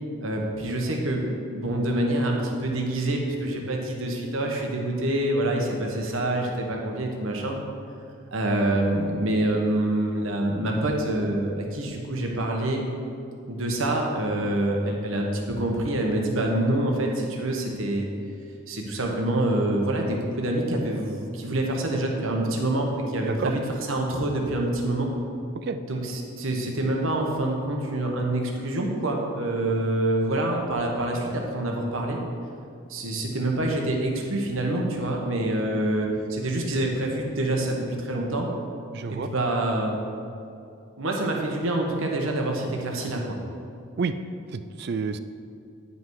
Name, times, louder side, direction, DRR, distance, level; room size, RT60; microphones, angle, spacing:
voice 1, 0.2-7.6 8.3-12.8 13.5-18.1 18.7-23.6 23.9-25.1 25.9-32.2 32.9-38.5 39.1-39.9 41.0-43.4, right 1 dB, 70° right, 1 dB, 1.2 m, -26 dB
voice 2, 38.9-39.3 44.0-44.2 44.5-45.2, right 5 dB, 50° right, 11 dB, 0.3 m, -29 dB
9.9 x 5.5 x 4.7 m, 2.5 s
head